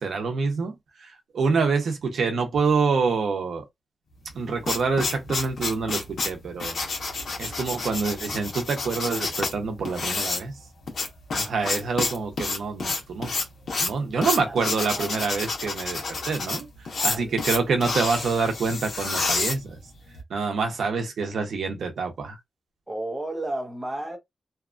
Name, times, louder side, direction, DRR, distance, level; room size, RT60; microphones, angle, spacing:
voice 1, 0.0-3.7 4.3-6.8 7.4-10.6 11.3-13.3 13.8-19.8 20.3-22.4, right 4 dB, 85° right, 0.7 m, -26 dB
sound 1, 4.3-20.2, left 3 dB, 75° left, 0.9 m, -29 dB
voice 2, 14.1-15.2 16.9-17.4 22.9-24.2, right 1 dB, 10° right, 0.8 m, -34 dB
2.8 x 2.3 x 2.4 m
wide cardioid pair, 175°, 0 cm